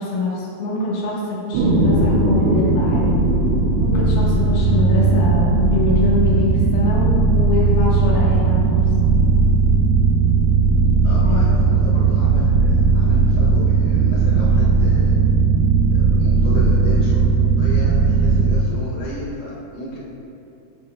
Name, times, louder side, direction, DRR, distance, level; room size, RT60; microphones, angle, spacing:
voice 1, 0.0-3.1 3.8-8.6 11.1-11.4, left 2 dB, 60° left, -7 dB, 3.0 m, -24 dB
sound 1, 1.5-18.5, right 4 dB, 85° right, 2.4 m, -17 dB
voice 2, 11.0-15.2 15.9-17.2 17.6-20.0, equal, 80° left, -8 dB, 4.1 m, -33 dB
9.2 x 7.7 x 2.4 m, 2.7 s
omnidirectional pair, 5.6 m